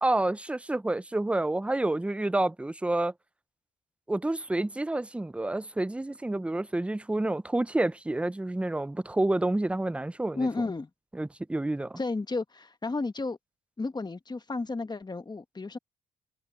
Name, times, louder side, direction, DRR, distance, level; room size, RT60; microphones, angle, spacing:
voice 1, 0.0-3.1 4.1-10.5 11.1-12.0, right 2 dB, 5° right, 0.4 m, -29 dB
voice 2, 10.4-10.9 12.0-13.4 13.8-15.8, left 3 dB, 20° left, 1.3 m, -32 dB
cardioid pair, 90°, 20 cm